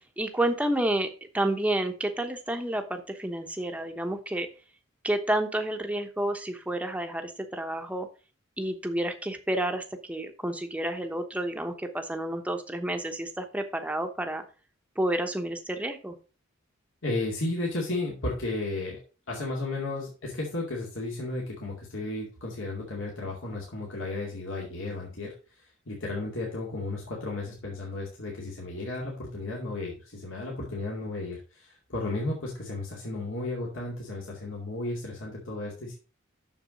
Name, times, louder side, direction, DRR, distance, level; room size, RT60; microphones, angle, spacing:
voice 1, 0.2-1.1 1.3-4.5 5.0-8.1 8.6-14.4 15.0-16.1, right 1 dB, 5° right, 6 dB, 1.0 m, -30 dB
voice 2, 17.0-19.0 19.3-36.0, left 2 dB, 65° left, -3 dB, 2.4 m, -34 dB
7.1 x 6.7 x 5.1 m, 0.35 s
head